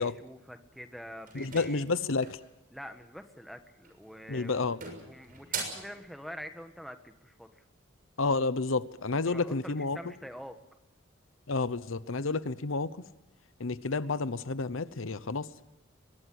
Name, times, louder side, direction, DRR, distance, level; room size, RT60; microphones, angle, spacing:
voice 1, 0.0-1.8 2.7-4.8 5.0-7.6 9.3-10.6, equal, ahead, 6 dB, 1.4 m, -46 dB
voice 2, 1.3-2.4 4.3-4.8 8.2-10.0 11.5-13.0 13.6-15.5, left 3 dB, 80° left, 15 dB, 0.9 m, -30 dB
sound 1, 1.3-2.5 3.7-4.1 4.5-5.9, right 5 dB, 40° right, 6.5 m, -40 dB
22.5 x 21.0 x 7.8 m, 0.93 s
head